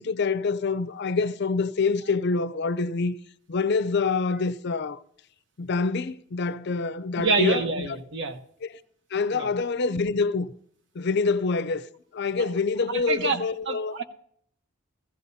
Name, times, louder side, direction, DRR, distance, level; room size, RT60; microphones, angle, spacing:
voice 1, 0.0-3.2 3.5-5.0 5.6-8.0 8.6-8.7 9.1-10.5 10.9-11.9 12.1-13.9, left 4 dB, 55° left, 0.5 m, -26 dB
voice 2, 7.2-8.4 9.3-9.5 12.4-12.5 12.9-13.4 13.7-14.0, right 3 dB, 60° right, 1.0 m, -27 dB
16.0 x 15.5 x 2.7 m
head